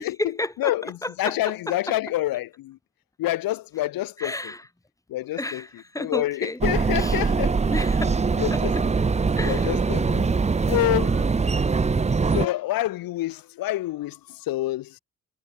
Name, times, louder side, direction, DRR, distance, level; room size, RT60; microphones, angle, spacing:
voice 1, 0.0-2.0 4.2-4.7 5.3-6.6 7.0-7.3 7.7-8.8 9.4-9.9 10.7-11.3 11.9-12.1, left 1 dB, 10° left, 2.4 m, -33 dB
voice 2, 1.2-2.8 3.2-4.3 5.1-5.6 6.0-7.6 8.4-8.7 9.4-10.3 10.7-11.1 12.3-14.2 14.5-14.9, left 15 dB, 90° left, 0.8 m, -27 dB
sound 1, 6.6-12.5, right 4 dB, 20° right, 0.6 m, -22 dB
cardioid pair, 80°, 34 cm